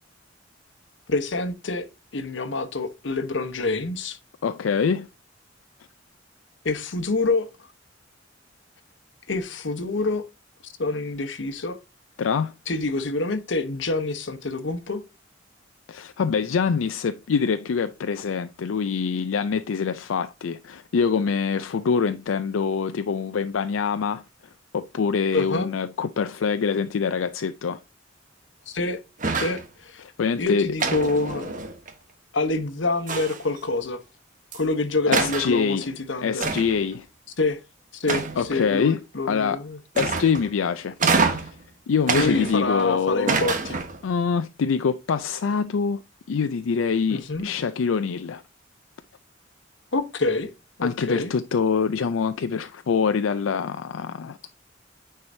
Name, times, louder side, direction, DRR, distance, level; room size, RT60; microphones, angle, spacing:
voice 1, 1.1-1.9 2.1-4.2 6.6-7.7 9.3-10.2 10.6-11.8 12.7-15.0 25.3-25.7 28.7-29.0 29.3-30.0 30.4-31.5 32.3-34.0 34.5-36.4 37.4-37.6 37.9-39.8 42.1-43.8 47.1-47.5 49.9-50.5 50.8-51.3, left 3 dB, 65° left, 1.0 m, -27 dB
voice 2, 4.4-5.1 12.2-12.5 15.9-24.2 24.7-27.8 30.0-30.7 35.1-35.9 36.2-37.1 38.4-39.0 39.3-39.6 40.0-41.6 41.9-43.4 44.0-46.0 46.3-48.4 50.8-54.5, left 6 dB, 90° left, 0.4 m, -25 dB
sound 1, 29.2-29.7 30.8-31.9 33.1-33.6 34.5-34.6 35.1-35.5 36.4-36.9 38.1-38.6 39.9-40.5 41.0-41.6 42.1-42.8 43.3-44.0, right 4 dB, 40° right, 1.2 m, -26 dB
9.5 x 4.7 x 2.7 m
head